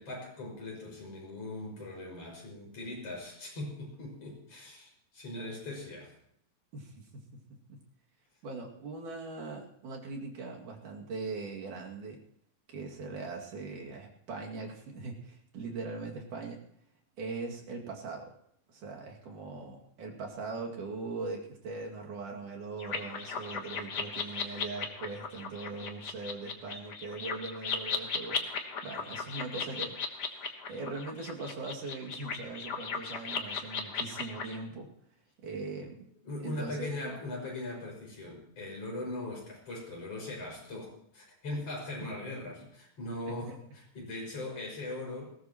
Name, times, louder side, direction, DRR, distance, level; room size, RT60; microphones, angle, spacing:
voice 1, 0.0-6.1 35.9-45.4, left 2 dB, 45° left, -1 dB, 6.7 m, -40 dB
voice 2, 6.7-7.2 7.7-7.8 8.4-12.2 12.7-16.6 17.2-18.3 18.7-28.4 28.8-30.0 30.7-34.9 35.4-36.1 36.4-37.2 43.5-43.6, right 3 dB, 65° right, -1 dB, 3.7 m, -40 dB
sound 1, 22.8-34.6, left 5 dB, 75° left, 0.9 m, -37 dB
20.0 x 17.5 x 3.0 m, 0.68 s
omnidirectional pair, 4.0 m